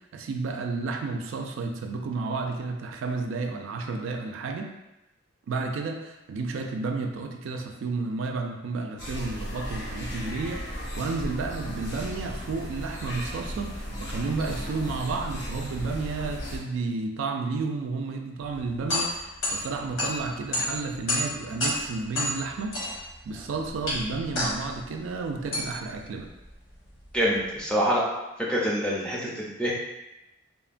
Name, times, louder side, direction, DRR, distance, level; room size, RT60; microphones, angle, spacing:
voice 1, 0.1-4.7 5.5-26.3, right 3 dB, 80° right, 3 dB, 0.3 m, -32 dB
sound 1, 9.0-16.6, equal, 55° left, 0.6 m, -36 dB
sound 2, 18.4-27.6, left 1 dB, 80° left, 0.9 m, -32 dB
voice 2, 27.1-28.0 28.4-29.7, equal, 5° left, -5 dB, 0.4 m, -26 dB
3.0 x 2.1 x 2.5 m, 0.96 s
head